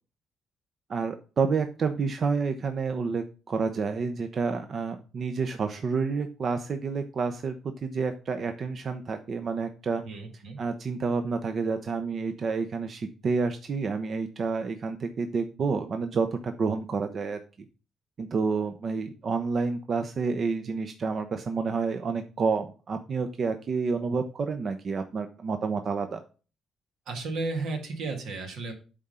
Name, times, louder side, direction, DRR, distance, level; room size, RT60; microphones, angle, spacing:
voice 1, 0.9-10.0 10.6-17.4 18.2-26.2, right 4 dB, 50° right, 7 dB, 0.7 m, -29 dB
voice 2, 10.0-10.6 27.1-28.7, right 3 dB, 80° right, 3 dB, 1.9 m, -33 dB
8.5 x 3.8 x 5.5 m, 0.36 s
cardioid pair, 90°, 0 cm